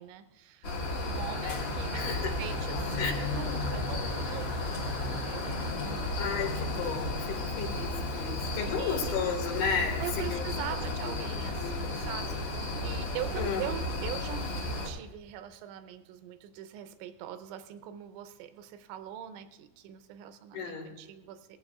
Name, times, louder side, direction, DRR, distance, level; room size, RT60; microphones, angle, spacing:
voice 1, 0.0-6.3 8.1-8.3 8.7-9.2 10.0-12.5 12.8-21.6, right 11 dB, 85° right, 10 dB, 3.0 m, -42 dB
sound 1, 0.6-14.9, left 2 dB, 50° left, 2.0 m, -33 dB
voice 2, 1.9-2.4 3.0-3.1 6.2-10.5 10.9-11.3 11.6-12.1 13.4-13.7 20.5-20.9, left 6 dB, 80° left, 2 dB, 4.2 m, -34 dB
18.5 x 15.0 x 2.4 m, 0.97 s
omnidirectional pair, 5.4 m